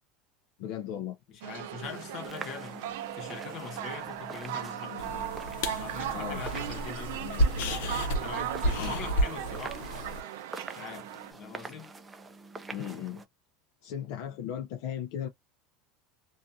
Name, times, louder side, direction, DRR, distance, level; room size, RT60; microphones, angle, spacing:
voice 1, 0.6-1.2 6.1-6.4 8.8-9.0 12.7-13.2 13.8-15.3, left 10 dB, 60° left, 0.4 m, -36 dB
voice 2, 1.3-5.2 5.8-10.1 10.7-11.9, left 6 dB, 40° left, 0.9 m, -43 dB
sound 1, 1.4-11.3, right 11 dB, 80° right, 0.5 m, -38 dB
sound 2, 1.8-13.2, right 3 dB, 15° right, 0.4 m, -46 dB
sound 3, 5.0-10.2, equal, 80° left, 0.9 m, -31 dB
2.5 x 2.3 x 2.5 m
supercardioid pair, 165°, 0 cm